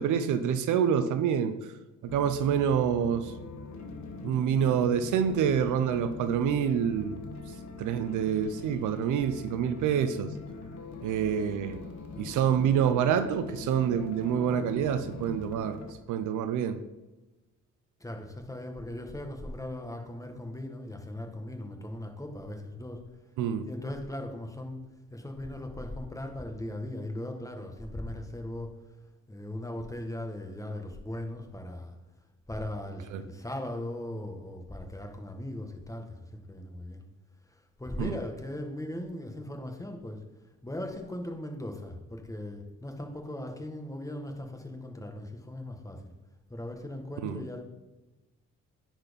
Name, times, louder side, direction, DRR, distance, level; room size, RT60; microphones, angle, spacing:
voice 1, 0.0-1.5 2.0-3.3 4.2-7.2 7.8-10.3 11.0-11.8 12.2-15.8 16.1-16.8 23.4-23.7 33.1-33.2 38.0-38.1 47.2-47.4, right 8 dB, 80° right, 10 dB, 0.7 m, -27 dB
sound 1, 2.1-15.9, left 3 dB, 65° left, 1.4 m, -42 dB
voice 2, 18.0-23.0 23.6-24.8 25.1-28.7 29.3-31.9 32.5-37.0 37.5-40.2 40.6-46.1 46.5-47.6, left 1 dB, 10° left, 3 dB, 1.6 m, -38 dB
10.0 x 4.5 x 5.3 m, 1.1 s
cardioid pair, 90°, 30 cm